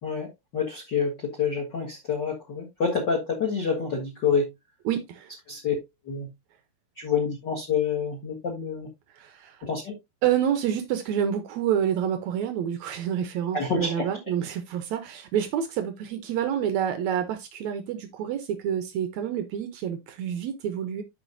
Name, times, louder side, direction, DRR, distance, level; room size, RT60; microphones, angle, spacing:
voice 1, 0.0-4.5 5.5-5.7 6.0-6.3 7.0-8.9 9.6-9.9 13.5-14.1, left 5 dB, 50° left, 1.4 m, -27 dB
voice 2, 4.8-5.3 9.1-9.6 10.2-21.0, right 9 dB, 85° right, 1.6 m, -28 dB
12.5 x 5.0 x 2.6 m
omnidirectional pair, 4.4 m